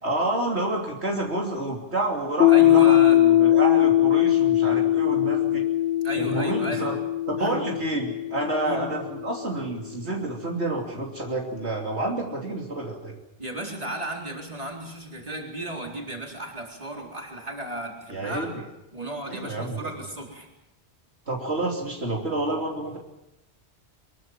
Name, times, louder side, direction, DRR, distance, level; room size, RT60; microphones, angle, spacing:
voice 1, 0.0-5.6 6.2-7.0 7.3-13.2 18.1-18.6 19.3-19.9 21.3-23.0, right 2 dB, 75° right, 0 dB, 3.4 m, -29 dB
Piano, 2.4-9.6, left 13 dB, 90° left, 2.6 m, -21 dB
voice 2, 2.5-3.2 6.0-7.0 7.4-7.6 8.6-8.8 13.4-18.5 18.9-20.5, right 1 dB, 35° right, 0 dB, 4.2 m, -34 dB
24.0 x 21.5 x 7.5 m, 0.93 s
omnidirectional pair, 1.1 m